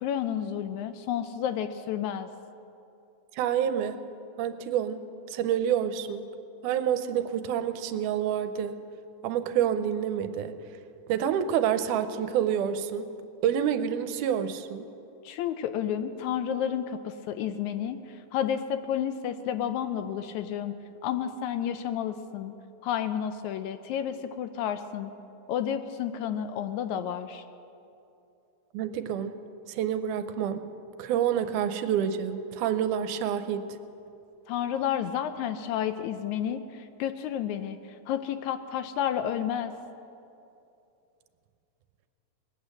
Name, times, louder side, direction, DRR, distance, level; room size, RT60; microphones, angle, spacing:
voice 1, 0.0-2.3 15.3-18.0 18.3-20.7 21.0-22.5 22.8-25.1 25.5-27.4 34.5-37.8 38.1-39.7, left 9 dB, 80° left, 10 dB, 1.8 m, -31 dB
voice 2, 3.3-4.0 4.4-5.0 5.3-6.3 6.6-8.8 9.2-10.5 11.1-13.1 13.4-14.9 28.7-29.4 29.7-30.6 31.0-33.8, right 9 dB, 90° right, 10 dB, 2.1 m, -28 dB
19.5 x 8.3 x 7.6 m, 2.7 s
omnidirectional pair, 3.6 m